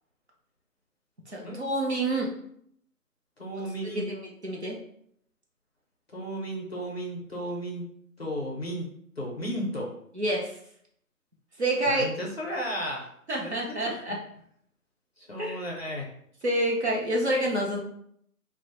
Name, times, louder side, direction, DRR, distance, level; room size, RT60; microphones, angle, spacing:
voice 1, 1.3-2.3 3.9-4.8 10.2-10.6 11.6-12.1 13.3-14.2 15.4-15.6 16.4-17.8, right 1 dB, 45° right, -2 dB, 0.5 m, -28 dB
voice 2, 3.4-4.1 6.1-7.9 8.2-8.9 9.2-9.9 11.9-13.1 13.4-14.0 15.2-16.1, equal, 45° left, -1 dB, 0.5 m, -34 dB
2.3 x 2.1 x 2.9 m, 0.68 s
figure-of-eight pair, 165°, 46 cm